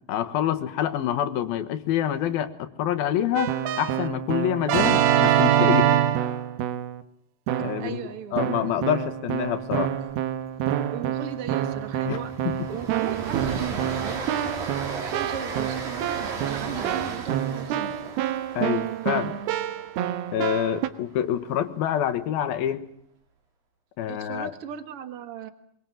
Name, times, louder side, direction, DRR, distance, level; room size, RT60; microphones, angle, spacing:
voice 1, 0.1-3.5 3.8-5.9 7.6-8.0 8.3-9.9 12.1-12.2 12.4-12.7 18.6-19.4 20.3-22.9 24.0-24.5, left 10 dB, 85° left, 10 dB, 3.2 m, -26 dB
Keyboard (musical), 3.4-7.0 7.5-8.0 8.4-20.9, right 11 dB, 90° right, 3.0 m, -26 dB
voice 2, 7.8-8.4 10.9-12.3 12.7-14.5 14.9-18.1 24.1-25.5, right 9 dB, 50° right, 10 dB, 2.1 m, -37 dB
Train, 10.1-10.2 10.4-10.6 10.9-21.1, right 4 dB, 70° right, 4.8 m, -36 dB
23.5 x 23.0 x 7.5 m, 0.70 s
omnidirectional pair, 4.2 m